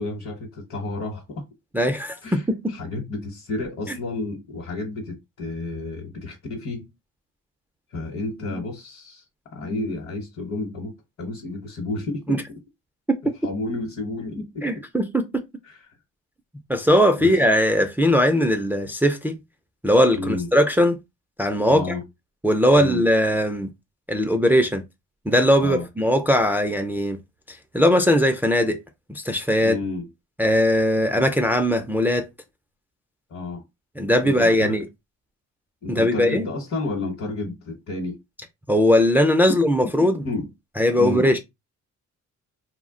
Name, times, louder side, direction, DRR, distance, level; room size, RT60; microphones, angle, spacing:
voice 1, 0.0-1.4 2.2-6.9 7.9-9.2 9.5-12.4 13.4-14.7 15.6-15.8 17.2-17.3 20.1-20.5 21.7-22.0 22.7-23.0 25.6-25.8 29.6-30.1 33.3-33.6 34.2-34.8 35.8-38.2 40.2-40.5 41.0-41.3, left 2 dB, 55° left, 1.0 m, -31 dB
voice 2, 1.7-2.8 3.9-4.0 12.3-12.4 13.1-13.2 14.6-15.4 16.7-19.3 19.8-21.0 21.4-22.0 22.4-23.7 24.1-24.8 25.3-27.2 27.5-28.8 29.1-29.8 30.4-32.3 34.0-34.8 35.9-36.4 38.7-40.2 40.8-41.4, equal, 5° right, 0.4 m, -19 dB
2.2 x 2.1 x 3.6 m
cardioid pair, 90°, 30 cm